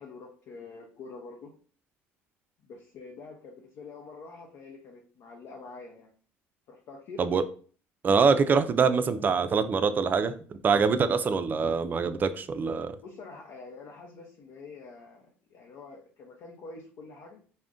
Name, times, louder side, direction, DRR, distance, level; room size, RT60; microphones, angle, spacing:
voice 1, 0.0-1.5 2.6-6.1 6.7-7.2 13.0-17.4, left 4 dB, 65° left, 0.6 m, -46 dB
voice 2, 8.0-10.3 10.6-12.9, right 5 dB, 35° right, 0.3 m, -24 dB
2.5 x 2.1 x 3.6 m
supercardioid pair, 90°, 5 cm